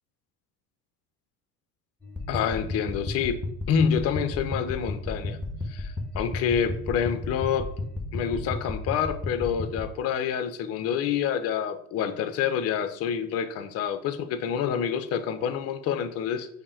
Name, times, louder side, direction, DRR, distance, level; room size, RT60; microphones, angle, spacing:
sound 1, 2.0-9.8, left 2 dB, 5° left, 0.9 m, -33 dB
voice 1, 2.3-3.4 3.7-5.4 5.7-7.7 8.1-16.5, left 8 dB, 30° left, 11 dB, 0.5 m, -27 dB
5.2 x 2.1 x 4.4 m, 0.68 s
figure-of-eight pair, 65°, 49 cm